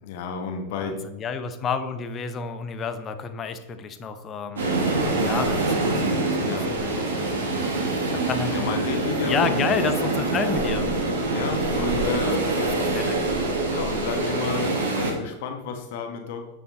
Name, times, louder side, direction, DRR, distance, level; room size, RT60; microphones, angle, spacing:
voice 1, 0.0-1.0 6.4-6.8 8.5-9.5 11.3-12.6 13.7-16.6, left 6 dB, 50° left, 4 dB, 1.4 m, -31 dB
voice 2, 0.7-4.7 5.2-7.4 8.3-8.7 9.3-10.9 12.6-13.5, left 6 dB, 25° left, 9 dB, 0.8 m, -30 dB
sound 1, 4.6-15.1, right 2 dB, 65° right, 1.9 m, -25 dB
9.3 x 6.0 x 4.0 m, 0.96 s
figure-of-eight pair, 90°, 0 cm